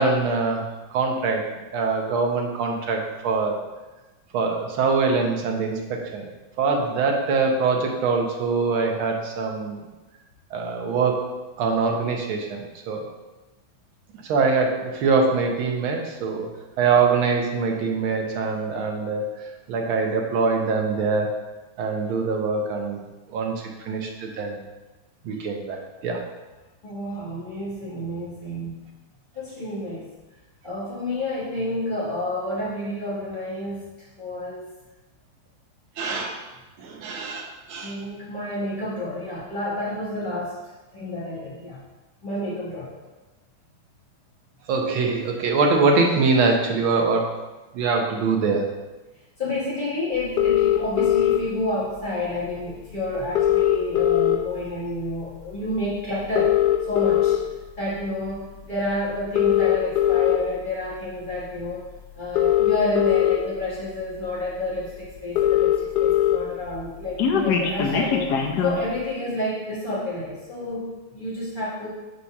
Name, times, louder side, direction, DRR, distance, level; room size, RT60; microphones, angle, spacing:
voice 1, 0.0-1.5 1.7-3.6 4.3-6.2 6.6-9.8 10.5-11.3 11.6-13.0 14.2-16.5 16.8-19.3 19.7-21.3 21.8-23.0 23.3-24.6 25.2-26.2 36.0-36.4 36.8-37.9 44.7-47.3 47.7-48.7, right 4 dB, 80° right, 2 dB, 1.7 m, -23 dB
voice 2, 26.8-28.7 29.3-30.0 30.6-34.7 36.0-36.2 37.8-40.6 40.9-41.8 42.2-42.9 49.4-56.5 56.9-57.4 57.8-61.9 62.2-68.3 68.6-71.9, left 1 dB, 25° left, -9 dB, 1.7 m, -29 dB
sound 1, 50.4-51.4 52.6-52.7 52.9-53.0 53.2-54.6 55.1-55.4 56.2-57.4 58.1-58.3 59.2-60.4 61.6-61.7 62.2-63.4 64.0-64.1 64.4-64.5 64.8-64.9 65.1-66.4 66.7-68.8, left 11 dB, 65° left, 1.1 m, -20 dB
4.9 x 4.1 x 5.7 m, 1.1 s
omnidirectional pair, 2.2 m